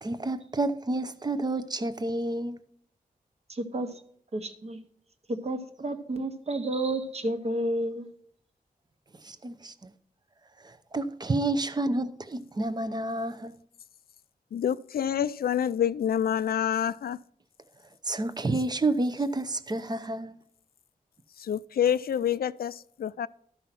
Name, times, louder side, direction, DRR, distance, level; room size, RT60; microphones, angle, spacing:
voice 1, 0.0-2.6 9.2-9.9 10.6-13.5 18.0-20.4, right 2 dB, 25° right, 0.7 m, -30 dB
voice 2, 3.5-3.9 4.3-4.8 5.3-8.0, right 1 dB, 45° right, 1.2 m, -31 dB
voice 3, 14.5-17.2 21.4-23.3, left 9 dB, 85° left, 0.4 m, -27 dB
12.5 x 5.5 x 5.9 m
wide cardioid pair, 160°, 15 cm